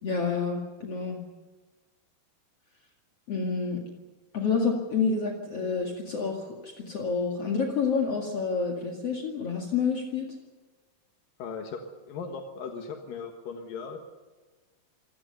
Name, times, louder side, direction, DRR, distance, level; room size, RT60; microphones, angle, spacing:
voice 1, 0.0-1.2 3.3-3.8 4.3-10.3, left 5 dB, 50° left, 0 dB, 2.9 m, -28 dB
voice 2, 11.4-14.0, left 5 dB, 85° left, 4 dB, 3.2 m, -38 dB
26.5 x 17.5 x 6.8 m, 1.3 s
omnidirectional pair, 3.9 m